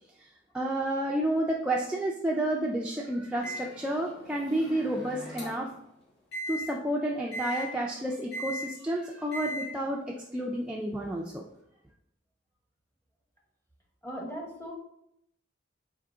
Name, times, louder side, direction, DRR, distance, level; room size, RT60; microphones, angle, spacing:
voice 1, 0.5-5.7 6.5-10.0 10.3-11.5, right 1 dB, 5° right, -2 dB, 0.3 m, -30 dB
Microwave oven, 3.4-5.8 6.3-6.6 7.3-7.7 8.3-8.7 9.3-9.7, equal, 60° left, 1.6 m, -38 dB
voice 2, 14.0-14.7, equal, 10° left, -1 dB, 1.0 m, -38 dB
4.7 x 2.8 x 3.7 m, 0.76 s
head